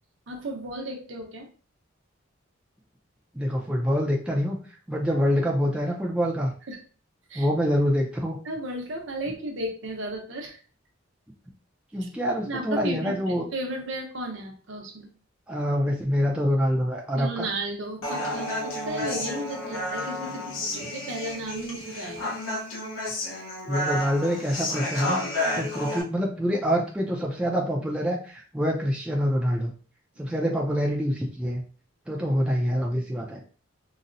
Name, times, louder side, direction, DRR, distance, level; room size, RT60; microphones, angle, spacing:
voice 1, 0.3-1.5 6.7-6.8 7.3-7.5 8.4-10.6 12.0-12.1 12.4-15.1 17.1-22.4 30.2-30.3, right 1 dB, 65° right, 2 dB, 0.7 m, -34 dB
voice 2, 3.3-4.6 4.9-6.5 7.4-8.4 11.9-13.4 15.5-17.5 23.6-25.2 25.5-29.7 30.2-31.6 32.1-33.4, equal, 5° right, -2 dB, 0.4 m, -26 dB
Human voice, 18.0-26.0, left 1 dB, 80° left, 0.8 m, -31 dB
3.9 x 2.0 x 2.5 m, 0.40 s
head